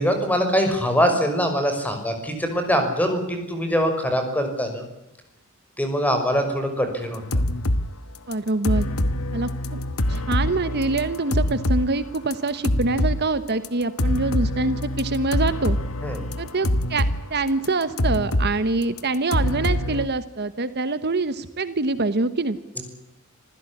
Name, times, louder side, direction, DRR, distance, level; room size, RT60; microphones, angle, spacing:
voice 1, 0.0-4.8 5.8-7.2 16.0-16.2 22.8-22.9, equal, 5° left, 6 dB, 6.0 m, -23 dB
sound 1, 7.1-7.9 8.3-11.9 12.1-13.2 13.6-13.7 14.0-17.2 17.5-18.5 18.8-20.1, left 1 dB, 80° left, 1.4 m, -24 dB
voice 2, 8.3-8.9 9.3-9.8 10.1-15.8 16.4-22.6, right 3 dB, 50° right, 12 dB, 1.2 m, -25 dB
26.5 x 16.0 x 9.9 m, 0.92 s
head